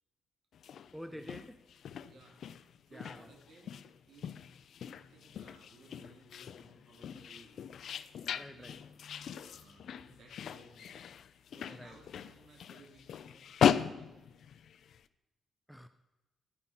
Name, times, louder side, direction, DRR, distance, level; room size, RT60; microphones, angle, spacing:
sound 1, 0.5-15.0, left 8 dB, 60° left, 0.4 m, -38 dB
voice 1, 0.9-1.6 2.9-3.3 8.4-8.8 11.7-12.0 15.7-15.9, equal, ahead, 0.4 m, -48 dB
voice 2, 2.0-2.4 2.9-3.8 4.1-4.3 4.7-7.6 8.1-8.8 9.4-11.0 11.5-14.5 15.0-15.1, right 2 dB, 55° right, 3.3 m, -60 dB
11.0 x 9.6 x 5.8 m
wide cardioid pair, 170°, 0 cm